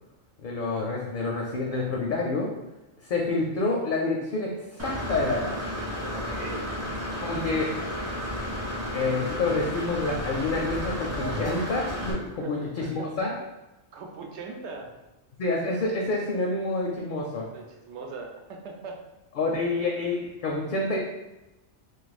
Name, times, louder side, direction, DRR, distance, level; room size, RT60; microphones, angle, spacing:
voice 1, 0.4-2.5 3.0-5.5 7.2-7.8 8.9-13.3 15.4-17.5 19.4-21.0, left 3 dB, 60° left, -1 dB, 0.6 m, -28 dB
Engine / Mechanisms, 4.8-12.1, equal, 15° right, 0.6 m, -32 dB
voice 2, 6.1-6.6 12.4-13.1 13.9-14.9 17.5-19.0 19.7-19.8, right 4 dB, 75° right, 2 dB, 0.9 m, -40 dB
2.5 x 2.4 x 4.0 m, 1.0 s
omnidirectional pair, 1.2 m